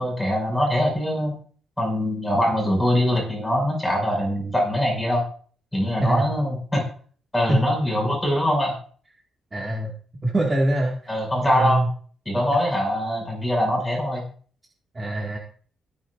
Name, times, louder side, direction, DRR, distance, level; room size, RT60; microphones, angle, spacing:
voice 1, 0.0-1.3 1.8-5.2 5.7-6.8 7.3-8.8 11.1-11.8 12.2-14.2, left 1 dB, 5° left, -1 dB, 6.7 m, -23 dB
voice 2, 9.5-9.9 10.2-11.1 11.6-11.9 14.9-15.4, right 1 dB, 20° right, -1 dB, 2.1 m, -23 dB
23.0 x 9.2 x 2.6 m, 0.44 s
cardioid pair, 140°, 0 cm